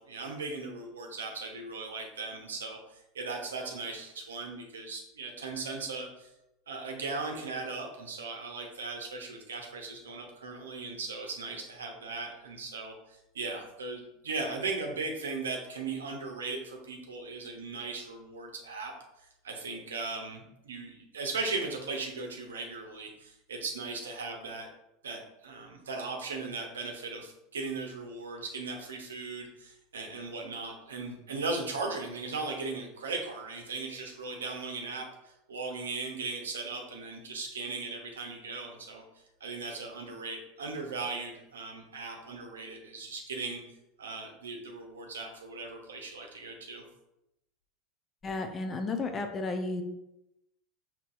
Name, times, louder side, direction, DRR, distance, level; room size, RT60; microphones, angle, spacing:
voice 1, 0.0-6.3 6.7-18.9 19.4-24.7 25.0-39.0 39.4-43.6 44.0-46.8, right 3 dB, 85° right, 2 dB, 0.8 m, -38 dB
voice 2, 48.2-49.8, left 3 dB, 30° left, 6 dB, 0.6 m, -33 dB
5.4 x 2.9 x 2.5 m, 0.88 s
hypercardioid pair, 85°, 0 cm